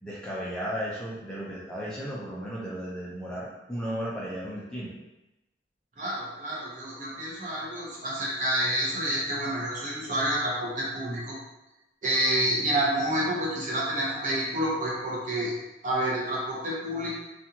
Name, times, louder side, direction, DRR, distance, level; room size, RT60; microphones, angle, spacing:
voice 1, 0.0-4.9, equal, 5° left, -7 dB, 0.5 m, -35 dB
voice 2, 6.0-11.4 12.0-15.5 15.8-17.1, right 1 dB, 45° right, -5 dB, 0.8 m, -28 dB
2.5 x 2.4 x 2.8 m, 0.96 s
head